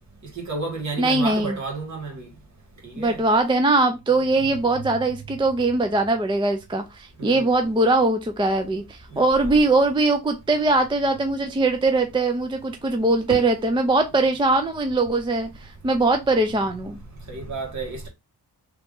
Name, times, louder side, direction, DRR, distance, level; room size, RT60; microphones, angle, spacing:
voice 1, 0.3-2.3 2.8-3.2 7.2-7.5 9.1-9.5 17.3-18.1, right 3 dB, 45° right, 1.7 m, -32 dB
voice 2, 1.0-1.6 2.9-17.0, right 2 dB, 15° right, 0.3 m, -21 dB
3.5 x 3.0 x 3.6 m
wide cardioid pair, 175°, 40 cm